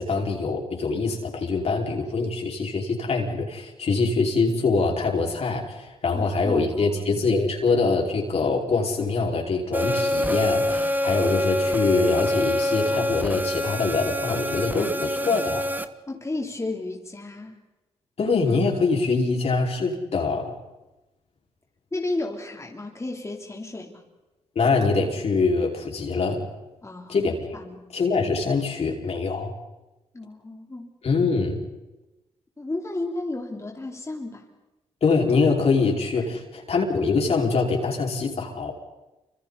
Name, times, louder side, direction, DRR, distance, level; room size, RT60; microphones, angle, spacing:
voice 1, 0.0-15.7 18.2-20.5 24.6-26.4 27.1-27.6 27.9-29.6 31.0-31.6 35.0-38.7, left 4 dB, 55° left, 0 dB, 5.2 m, -24 dB
voice 2, 6.1-7.2 16.1-17.6 21.9-24.0 26.8-27.9 30.1-30.9 32.6-34.5 36.2-36.3, left 2 dB, 25° left, 0 dB, 3.5 m, -33 dB
sound 1, 9.7-15.9, left 1 dB, 15° right, 1.5 m, -25 dB
30.0 x 26.0 x 4.2 m, 1.0 s
supercardioid pair, 50°, 13 cm